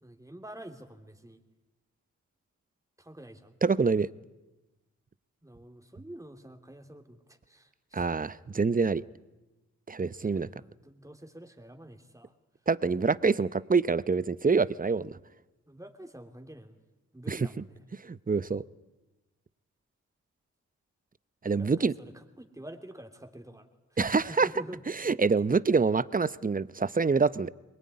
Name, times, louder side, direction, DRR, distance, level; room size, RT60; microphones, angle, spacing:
voice 1, 0.0-1.4 3.0-3.6 5.4-8.1 10.2-12.3 15.7-16.8 17.1-17.8 21.5-24.8, right 1 dB, 10° right, 5 dB, 2.9 m, -47 dB
voice 2, 3.6-4.1 7.9-9.0 9.9-10.5 12.7-15.2 17.3-17.4 18.0-18.6 21.4-21.9 24.0-24.5 25.0-27.5, right 4 dB, 25° right, 18 dB, 0.8 m, -26 dB
22.0 x 18.5 x 9.6 m, 1.1 s
supercardioid pair, 45°, 31 cm